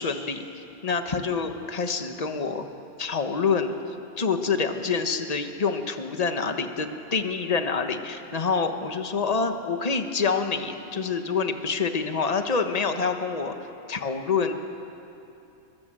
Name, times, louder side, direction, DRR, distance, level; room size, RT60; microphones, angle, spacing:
voice 1, 0.0-2.7 3.0-3.8 4.2-13.5 13.9-14.5, left 5 dB, 30° left, 6 dB, 1.3 m, -27 dB
24.5 x 22.0 x 7.7 m, 2.8 s
omnidirectional pair, 1.4 m